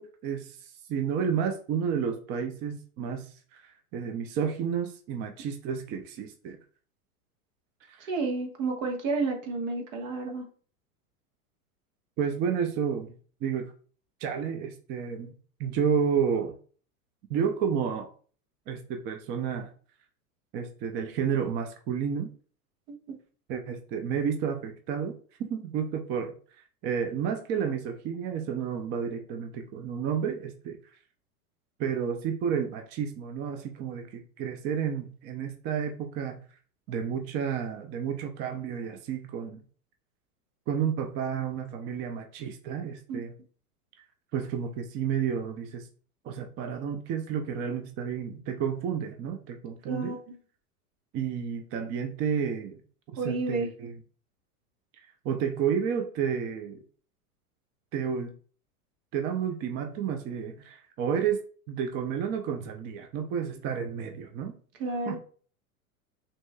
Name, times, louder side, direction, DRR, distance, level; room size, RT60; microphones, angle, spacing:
voice 1, 0.0-6.6 7.9-8.1 12.2-13.1 13.4-13.7 14.2-15.3 15.6-16.5 17.3-18.1 18.7-19.7 20.5-22.3 23.5-26.3 26.8-30.8 31.8-36.4 36.9-39.6 40.7-43.3 44.3-45.9 46.2-50.1 51.1-52.8 53.2-53.9 55.2-56.8 57.9-58.3 59.1-61.4 61.7-64.6 65.1-65.2, right 7 dB, 25° right, 5 dB, 0.4 m, -31 dB
voice 2, 8.1-10.5 22.9-23.0 43.1-43.2 49.8-50.4 53.2-53.7 64.8-65.2, right 3 dB, 60° right, 3 dB, 1.4 m, -31 dB
5.9 x 2.8 x 2.2 m, 0.42 s
hypercardioid pair, 100°, 45 cm